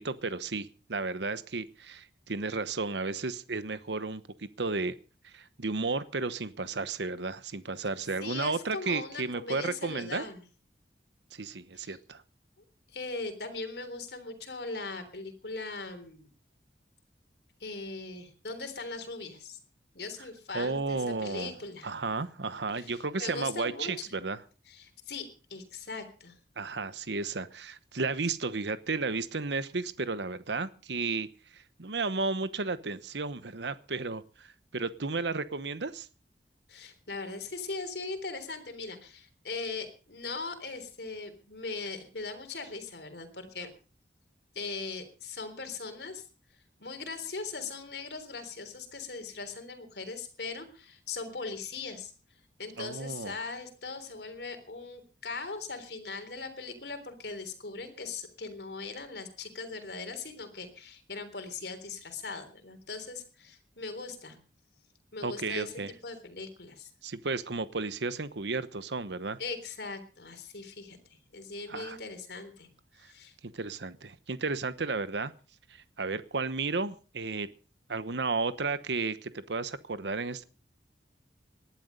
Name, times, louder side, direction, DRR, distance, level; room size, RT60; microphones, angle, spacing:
voice 1, 0.0-5.0 5.2-10.2 11.3-12.2 20.5-21.5 21.8-24.4 26.6-31.3 31.5-36.1 52.8-53.4 65.2-65.9 67.0-69.4 71.7-72.0 73.4-75.3 75.7-77.5 77.9-80.4, right 3 dB, 75° right, 14 dB, 1.0 m, -33 dB
voice 2, 8.2-10.4 11.7-12.0 12.9-16.3 17.6-19.6 19.9-21.9 22.8-23.9 24.7-26.4 36.7-43.7 44.5-46.3 46.8-52.1 52.6-64.4 65.1-65.7 66.0-66.9 69.4-71.0 71.3-72.7 73.0-73.3, left 4 dB, 65° left, 8 dB, 3.6 m, -40 dB
19.0 x 11.5 x 5.3 m, 0.37 s
head